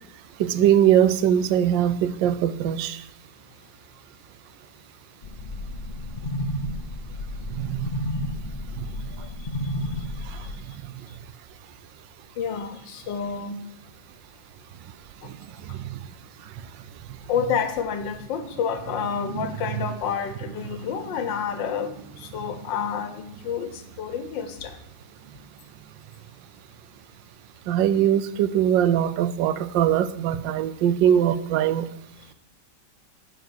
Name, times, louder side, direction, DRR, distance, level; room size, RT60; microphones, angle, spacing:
voice 1, 0.4-3.0 7.6-8.0 8.8-8.9 15.2-15.3 15.7-16.0 19.3-19.5 27.7-31.9, right 10 dB, 90° right, 14 dB, 1.3 m, -21 dB
sound 1, 5.2-10.5, left 1 dB, 45° left, 0.5 m, -31 dB
voice 2, 12.4-13.6 15.2-15.3 17.3-21.9 22.2-24.8, left 7 dB, 90° left, 9 dB, 1.7 m, -29 dB
10.0 x 4.7 x 7.8 m, 0.81 s
omnidirectional pair, 1.9 m